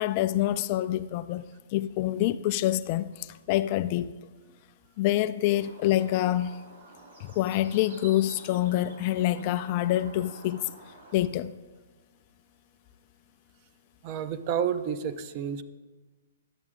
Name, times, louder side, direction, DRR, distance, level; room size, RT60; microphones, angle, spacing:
voice 1, 0.0-1.4 1.7-4.1 5.0-6.6 7.2-10.7 11.1-11.5, left 14 dB, 40° left, 0.3 m, -26 dB
Bird, 5.4-11.2, right 2 dB, 75° right, 2.9 m, -50 dB
voice 2, 14.0-15.6, right 8 dB, 40° right, 0.6 m, -30 dB
11.5 x 7.9 x 3.6 m
hypercardioid pair, 130°, 0 cm